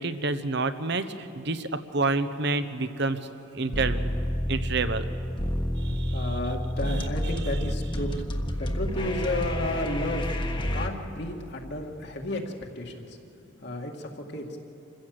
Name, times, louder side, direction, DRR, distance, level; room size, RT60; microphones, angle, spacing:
voice 1, 0.0-4.2 4.5-5.1 5.8-6.4 6.9-7.1, right 3 dB, 60° right, 11 dB, 1.1 m, -29 dB
sound 1, 3.7-10.9, equal, 25° left, 1.4 m, -29 dB
voice 2, 5.8-10.3 10.7-13.2 13.6-14.6, left 1 dB, 60° left, 1 dB, 2.1 m, -32 dB
27.5 x 15.5 x 7.8 m, 2.9 s
head